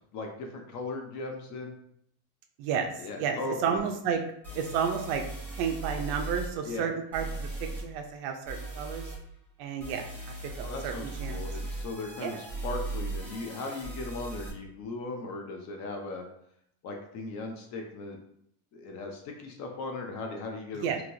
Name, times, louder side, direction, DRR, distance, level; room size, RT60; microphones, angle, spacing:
voice 1, 0.1-1.7 3.0-3.8 6.6-6.9 10.6-16.2 16.8-18.2 18.7-21.0, left 3 dB, 40° left, 2 dB, 0.4 m, -38 dB
voice 2, 2.6-4.2 4.5-5.2 5.6-9.1 9.6-11.5 12.2-12.4 20.8-21.0, right 7 dB, 55° right, 5 dB, 0.5 m, -32 dB
sound 1, 3.8-3.9 4.4-6.5 7.1-7.8 8.5-9.2 9.8-14.5, right 2 dB, 5° left, 0.9 m, -38 dB
2.9 x 2.8 x 2.6 m, 0.70 s
cardioid pair, 140°, 49 cm